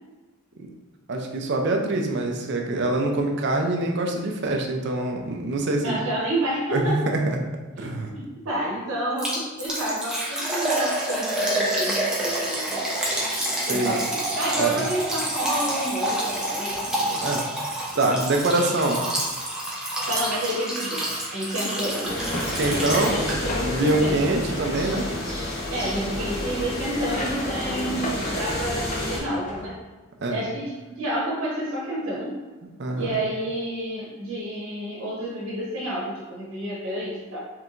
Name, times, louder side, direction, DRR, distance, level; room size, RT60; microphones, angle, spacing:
voice 1, 1.1-6.0 6.7-7.4 7.8-8.1 13.7-13.9 14.6-14.9 17.1-17.5 17.9-19.0 22.6-25.1 30.2-30.4 32.8-33.1, right 2 dB, 55° right, 2 dB, 0.5 m, -24 dB
voice 2, 5.8-7.0 7.8-12.8 13.7-17.2 20.1-22.2 23.0-23.6 24.0-24.2 25.7-29.7 30.3-32.4 32.9-37.4, right 1 dB, 80° right, -7 dB, 1.2 m, -30 dB
Liquid, 9.2-23.6 23.9-24.0 24.5-24.6, right 1 dB, 5° right, 0.7 m, -28 dB
sound 1, 22.0-29.2, left 1 dB, 80° left, 1.5 m, -30 dB
sound 2, 23.5-25.0 26.8-29.7, left 1 dB, 35° left, 0.5 m, -35 dB
4.6 x 3.4 x 2.5 m, 1.2 s
head